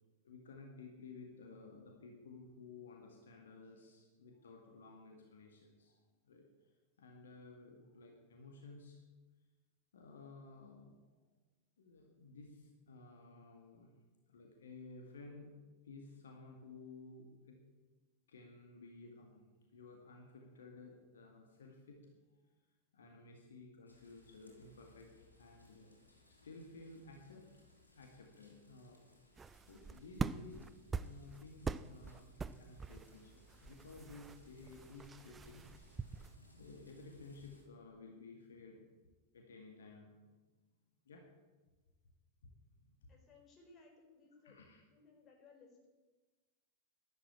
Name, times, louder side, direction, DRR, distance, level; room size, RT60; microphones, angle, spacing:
voice 1, 0.2-6.5 7.0-9.0 9.9-11.1 11.8-13.9 14.3-17.7 18.3-19.5 19.7-22.1 22.9-26.0 26.3-27.5 27.9-29.1 29.7-38.9 39.3-40.5 41.1-41.4 42.4-43.1 44.4-44.8, left 3 dB, 65° left, 2 dB, 2.1 m, -55 dB
sound 1, 23.9-37.6, left 2 dB, 85° left, 3.6 m, -67 dB
sound 2, 29.4-36.4, right 5 dB, 15° right, 0.5 m, -44 dB
voice 2, 43.1-45.9, left 4 dB, 25° left, 1 dB, 4.7 m, -63 dB
12.5 x 11.5 x 8.7 m, 1.2 s
figure-of-eight pair, 90°, 0 cm